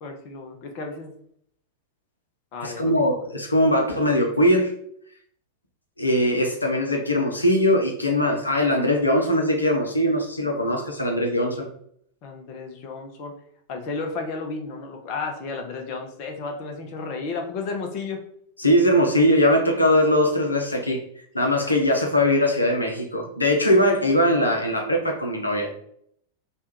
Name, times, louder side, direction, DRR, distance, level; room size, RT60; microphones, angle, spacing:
voice 1, 0.0-1.1 2.5-3.0 12.2-13.3 13.7-18.2, left 4 dB, 45° left, 3 dB, 0.7 m, -33 dB
voice 2, 2.6-4.7 6.0-11.7 18.6-21.0 21.3-25.7, left 1 dB, 80° left, 1 dB, 0.7 m, -21 dB
3.3 x 2.4 x 4.4 m, 0.67 s
figure-of-eight pair, 90°, 0 cm